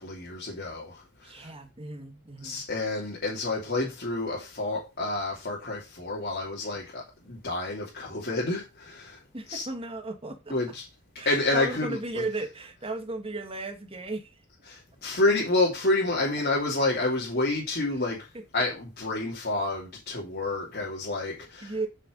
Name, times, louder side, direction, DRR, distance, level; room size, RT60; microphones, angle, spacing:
voice 1, 0.0-1.5 2.4-9.2 9.5-9.6 10.5-10.8 11.2-12.2 14.7-18.3 18.5-21.7, left 2 dB, 45° left, 3.0 m, -29 dB
voice 2, 1.2-2.7 9.3-10.5 11.2-14.3 21.6-21.9, right 2 dB, 25° right, 1.7 m, -35 dB
8.3 x 6.7 x 5.2 m
head